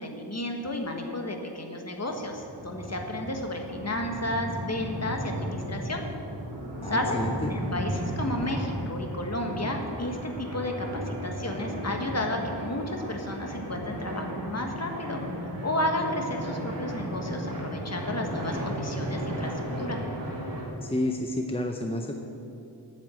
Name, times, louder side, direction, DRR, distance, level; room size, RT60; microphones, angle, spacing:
voice 1, 0.0-6.0 6.8-7.2 7.5-19.5 19.8-20.0, left 1 dB, 35° left, 3 dB, 1.4 m, -32 dB
sound 1, 2.1-20.7, equal, 70° right, 2.7 m, -35 dB
voice 2, 6.8-7.4 20.8-22.1, left 1 dB, 15° left, 3 dB, 0.6 m, -30 dB
9.1 x 8.0 x 7.6 m, 2.7 s
wide cardioid pair, 95°, 44 cm